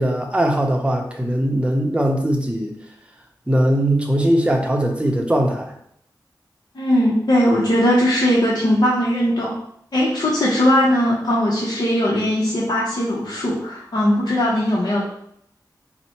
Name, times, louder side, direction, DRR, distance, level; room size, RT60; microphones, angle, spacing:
voice 1, 0.0-2.7 3.5-5.7, right 1 dB, 15° right, 1 dB, 0.7 m, -20 dB
voice 2, 6.7-9.6 9.9-15.0, equal, 55° left, -6 dB, 0.8 m, -19 dB
4.1 x 2.1 x 4.3 m, 0.72 s
cardioid pair, 55°, 8 cm